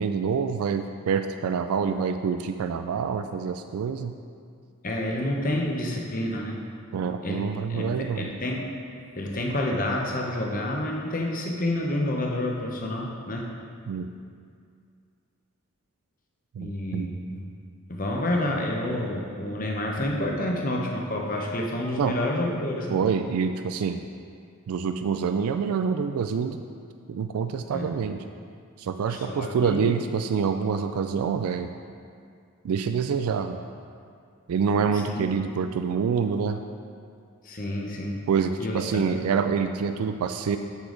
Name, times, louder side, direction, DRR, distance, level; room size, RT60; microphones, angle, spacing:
voice 1, 0.0-4.1 6.9-8.3 13.9-14.1 16.5-17.1 22.0-22.2 22.9-24.0 24.7-26.6 27.1-28.2 28.8-31.7 32.6-33.6 34.5-36.6 38.3-40.6, right 6 dB, 80° right, 8 dB, 0.3 m, -26 dB
voice 2, 4.8-6.6 7.2-7.4 7.7-8.7 9.2-13.5 16.6-17.4 17.9-23.0 27.7-27.9 29.1-29.9 34.9-35.3 37.4-38.3 38.6-39.1, left 1 dB, 40° left, 0 dB, 0.9 m, -29 dB
8.2 x 6.9 x 3.9 m, 2.3 s
head